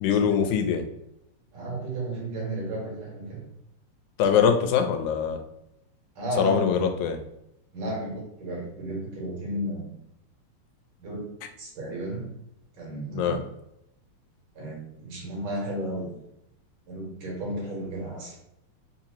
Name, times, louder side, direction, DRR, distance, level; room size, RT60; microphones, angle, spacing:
voice 1, 0.0-0.8 4.2-5.4 6.4-7.2 13.1-13.4, left 7 dB, 90° left, 6 dB, 2.0 m, -23 dB
voice 2, 1.5-3.5 6.2-6.9 7.7-10.0 11.0-11.2 11.6-12.4 12.8-13.4 14.6-16.2 16.9-18.4, right 1 dB, 50° right, -3 dB, 1.8 m, -33 dB
4.6 x 2.9 x 2.7 m, 0.82 s
omnidirectional pair, 3.3 m